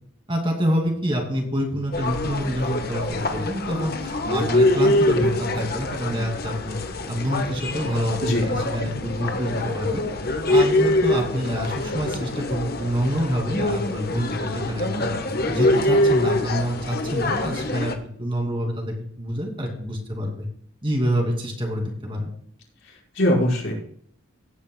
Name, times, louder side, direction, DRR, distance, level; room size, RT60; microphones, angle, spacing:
voice 1, 0.3-6.8 7.1-10.1 10.5-15.1 15.5-20.5 20.8-22.3, equal, 25° right, 1 dB, 2.5 m, -27 dB
sound 1, 1.9-17.9, left 1 dB, 45° left, 1.2 m, -24 dB
voice 2, 8.2-8.5 22.8-23.7, left 1 dB, 65° left, -3 dB, 5.1 m, -22 dB
17.0 x 9.6 x 2.3 m, 0.63 s
head